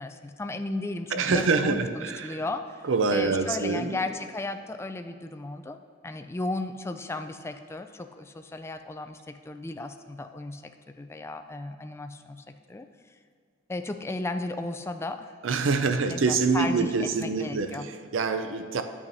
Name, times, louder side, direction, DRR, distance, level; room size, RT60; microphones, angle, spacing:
voice 1, 0.0-2.8 3.1-5.8 6.0-12.9 13.7-15.3 16.1-17.9, left 2 dB, 15° left, 7 dB, 0.3 m, -35 dB
voice 2, 1.1-2.4 2.8-4.0 15.4-18.8, right 4 dB, 80° right, 8 dB, 0.5 m, -26 dB
10.5 x 8.5 x 2.7 m, 2.2 s
head